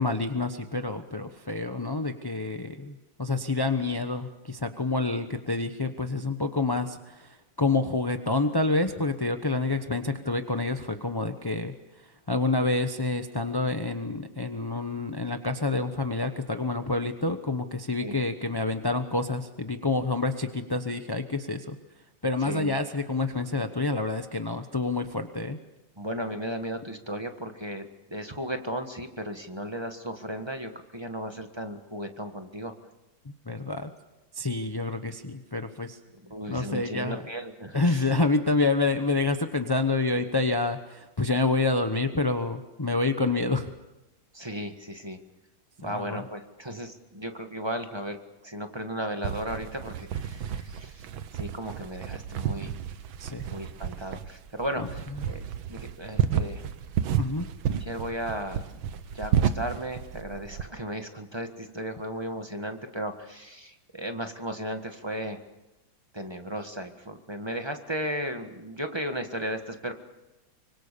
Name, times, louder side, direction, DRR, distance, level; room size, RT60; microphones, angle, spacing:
voice 1, 0.0-11.7 12.3-21.8 22.2-25.6 33.5-33.9 34.3-36.0 36.5-37.2 37.7-43.7 45.8-46.2 53.2-53.4 54.8-54.9 57.2-57.5, left 3 dB, 25° left, 7 dB, 0.5 m, -28 dB
voice 2, 22.4-22.7 26.0-32.7 36.2-38.0 44.3-45.2 45.8-48.2 48.4-51.0 51.3-52.7 53.5-56.6 57.7-58.6 59.1-65.4 66.1-69.9, equal, 15° right, 6 dB, 1.5 m, -35 dB
sound 1, 49.2-60.7, right 8 dB, 90° right, 1.9 m, -31 dB
25.0 x 25.0 x 6.9 m, 1.0 s
omnidirectional pair, 2.1 m